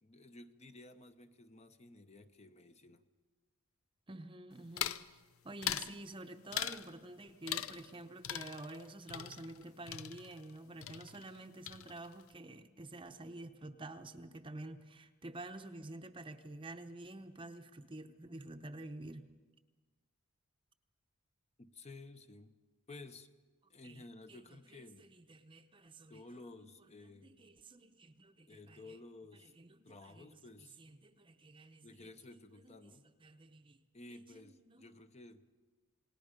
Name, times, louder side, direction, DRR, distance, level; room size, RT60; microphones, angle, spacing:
voice 1, 0.0-3.0 21.6-22.6 22.9-23.3 23.7-25.1 26.1-27.4 28.5-29.5 29.8-30.8 31.8-33.1 33.9-35.4, left 2 dB, 30° left, 0.8 m, -54 dB
voice 2, 4.1-19.2 23.8-24.0 24.3-24.4 24.7-26.2 26.5-26.7 27.0-29.0 29.4-30.4 30.8-31.8 32.3-32.9 33.2-33.8 34.1-34.8, right 2 dB, 25° right, 0.8 m, -49 dB
sound 1, 4.8-5.1 5.6-6.0 6.5-6.9 7.5-8.0 8.2-10.6 10.8-11.4 11.7-12.2, left 10 dB, 65° left, 0.6 m, -40 dB
28.0 x 19.0 x 5.2 m
head